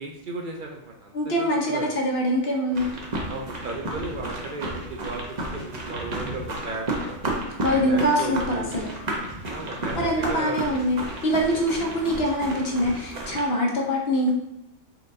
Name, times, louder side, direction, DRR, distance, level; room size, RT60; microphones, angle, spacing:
voice 1, 0.0-1.9 3.3-7.2 7.8-8.7 9.5-10.8 11.5-11.6, right 3 dB, 70° right, 1 dB, 0.4 m, -35 dB
voice 2, 1.1-2.9 7.6-8.9 10.0-14.3, equal, 55° left, 0 dB, 0.9 m, -24 dB
sound 1, 2.7-13.4, right 1 dB, 40° right, 0.8 m, -32 dB
4.5 x 3.7 x 2.6 m, 0.88 s
omnidirectional pair, 1.4 m